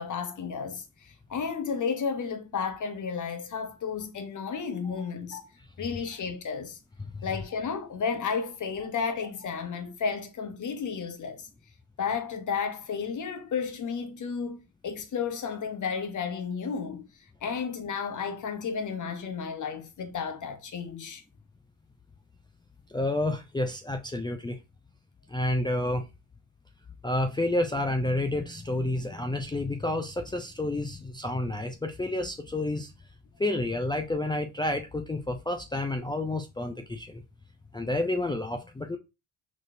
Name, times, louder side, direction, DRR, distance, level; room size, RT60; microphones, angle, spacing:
voice 1, 0.0-5.4 5.8-6.8 7.2-11.5 12.0-17.1 17.4-21.2, left 6 dB, 45° left, 1.0 m, -32 dB
voice 2, 22.9-24.6 25.3-26.1 27.0-32.9 33.4-37.2 37.7-39.0, left 1 dB, 10° left, 0.5 m, -29 dB
4.1 x 3.1 x 2.6 m
supercardioid pair, 65°, 42 cm